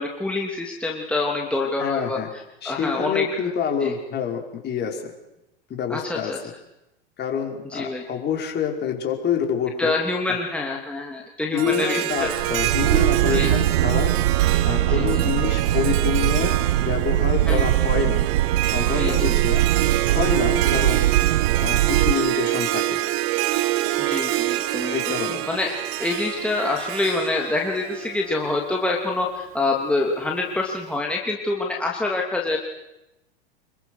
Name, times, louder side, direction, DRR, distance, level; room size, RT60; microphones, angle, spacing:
voice 1, 0.0-3.3 3.8-3.9 5.9-6.4 7.6-8.0 9.8-12.4 13.3-13.5 14.8-15.2 17.5-17.7 18.9-19.4 20.6-20.7 24.0-25.7 26.0-32.6, left 2 dB, 5° left, -1 dB, 3.1 m, -26 dB
voice 2, 1.8-2.3 2.6-5.1 5.7-6.3 7.2-9.9 11.5-14.1 14.6-18.3 18.6-19.9 20.1-21.0 21.5-23.0 24.9-25.5, left 7 dB, 35° left, 2 dB, 5.1 m, -27 dB
Harp, 11.6-28.8, right 15 dB, 45° right, 1.8 m, -26 dB
sound 1, 12.2-22.1, right 14 dB, 70° right, 1.0 m, -21 dB
27.0 x 22.5 x 6.5 m, 0.91 s
hypercardioid pair, 95°, 31 cm